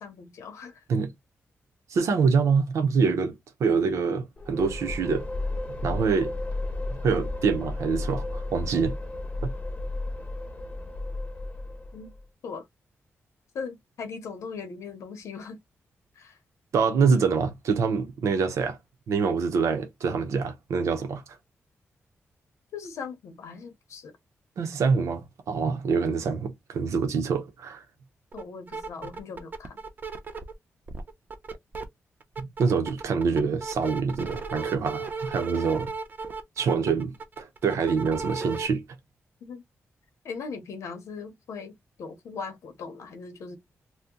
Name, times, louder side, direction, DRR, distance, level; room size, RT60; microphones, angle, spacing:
voice 1, 0.0-0.8 11.9-12.1 12.4-12.6 13.5-15.6 16.2-16.4 22.7-24.2 28.3-29.8 39.4-39.6 40.2-43.6, left 5 dB, 90° left, 0.8 m, -39 dB
voice 2, 1.9-3.3 3.6-5.3 5.8-6.3 7.0-9.0 16.7-18.8 19.1-21.2 24.6-27.8 32.4-35.9 36.6-38.8, right 5 dB, 85° right, 0.7 m, -25 dB
sound 1, 4.4-12.2, left 2 dB, 25° left, 0.7 m, -33 dB
sound 2, 28.3-28.4 28.7-30.5 30.9-31.8 32.2-38.7, right 4 dB, 40° right, 0.6 m, -35 dB
2.8 x 2.2 x 3.6 m
wide cardioid pair, 145°, 5 cm